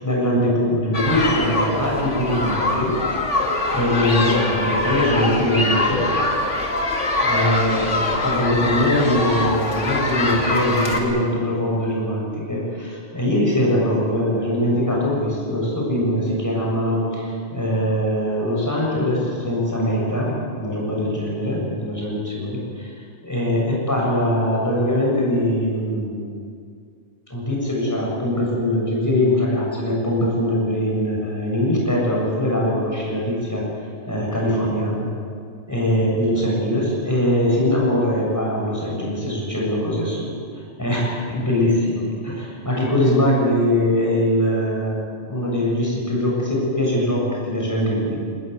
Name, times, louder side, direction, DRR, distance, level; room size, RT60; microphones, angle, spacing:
voice 1, 0.0-2.9 3.7-6.1 7.2-22.9 23.2-26.3 27.3-33.6 34.1-35.1 35.7-40.3 40.8-45.0 45.3-48.2, left 1 dB, 15° left, -3 dB, 7.1 m, -22 dB
sound 1, 0.9-11.0, left 2 dB, 70° left, 2.9 m, -23 dB
21.0 x 19.5 x 9.4 m, 2.2 s
omnidirectional pair, 1.3 m